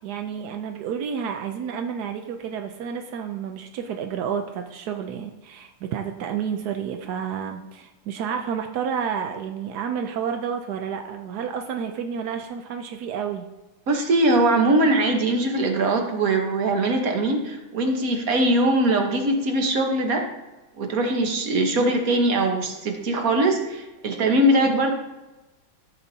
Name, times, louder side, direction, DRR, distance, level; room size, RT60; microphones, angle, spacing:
voice 1, 0.0-13.4 21.8-21.9 24.6-24.8, right 7 dB, 75° right, 5 dB, 0.9 m, -30 dB
voice 2, 13.9-20.2 20.8-24.9, right 1 dB, 50° right, 3 dB, 1.4 m, -21 dB
14.0 x 7.0 x 2.8 m, 1.1 s
omnidirectional pair, 2.3 m